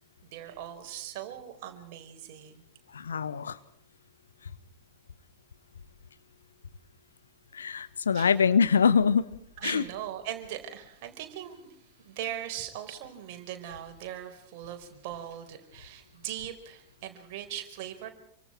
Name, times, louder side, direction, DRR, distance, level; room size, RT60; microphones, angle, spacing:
voice 1, 0.2-2.6 8.1-8.3 9.6-11.7 12.0-18.1, right 11 dB, 50° right, 4.7 m, -40 dB
voice 2, 2.9-3.5 7.6-9.2 9.6-9.8, left 6 dB, 70° left, 1.2 m, -24 dB
28.0 x 25.0 x 4.6 m
figure-of-eight pair, 90°, 0 cm